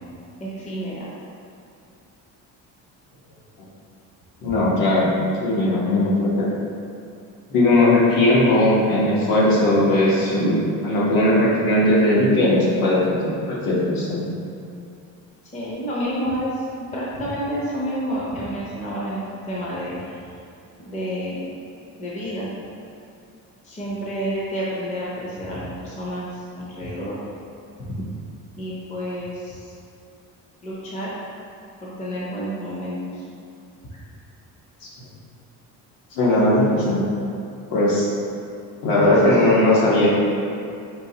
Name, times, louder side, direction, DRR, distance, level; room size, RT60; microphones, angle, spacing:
voice 1, 0.4-1.1 4.4-4.6 15.5-19.2 19.5-20.2 20.8-21.5 22.0-22.5 23.6-27.2 27.9-28.0 28.6-29.7 30.6-31.1 31.8-33.3 33.9-34.0 39.0-39.5, equal, 20° left, -6 dB, 0.6 m, -29 dB
voice 2, 4.4-5.1 5.4-6.5 7.5-10.6 10.8-14.2 34.8-34.9 36.1-37.0 37.7-38.1 38.8-40.1, left 1 dB, 70° left, -6 dB, 1.2 m, -18 dB
5.2 x 3.2 x 2.8 m, 2.5 s
cardioid pair, 170°, 37 cm